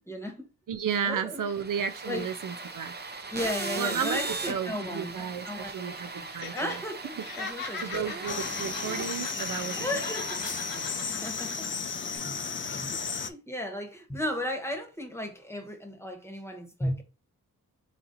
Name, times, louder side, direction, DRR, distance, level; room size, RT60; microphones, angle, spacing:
voice 1, 0.0-0.5 1.0-1.5 2.1-2.3 3.3-6.3 6.5-8.2 8.9-9.0 9.8-10.4 11.1-11.8 12.2-17.0, left 1 dB, 10° left, 1.2 m, -35 dB
voice 2, 0.7-2.9 3.8-4.2 4.5-6.8 7.8-10.1, right 7 dB, 70° right, 0.6 m, -33 dB
sound 1, 1.4-11.6, right 3 dB, 30° right, 0.7 m, -39 dB
Laughter, 6.3-6.8 7.1-9.8 10.0-11.7 12.0-12.2, left 4 dB, 90° left, 1.5 m, -39 dB
sound 2, 8.3-13.3, left 5 dB, 35° left, 0.5 m, -34 dB
4.2 x 4.2 x 2.6 m
wide cardioid pair, 90°, 34 cm